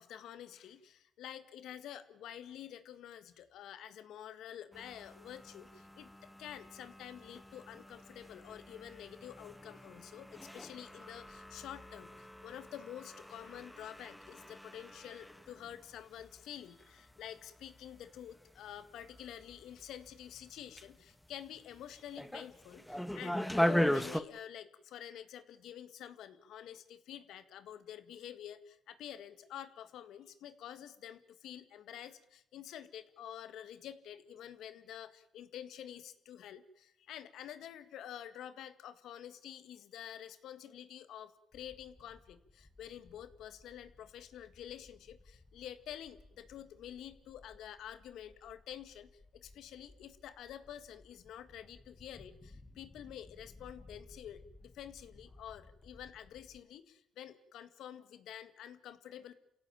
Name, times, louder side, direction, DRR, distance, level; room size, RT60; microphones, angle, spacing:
voice 1, 0.0-59.3, left 10 dB, 80° left, 12 dB, 1.9 m, -49 dB
sound 1, 4.7-24.2, equal, 5° left, 1.5 m, -40 dB
sound 2, 41.5-56.6, left 2 dB, 20° left, 1.9 m, -60 dB
29.0 x 16.5 x 9.0 m, 0.81 s
cardioid pair, 90°, 0 cm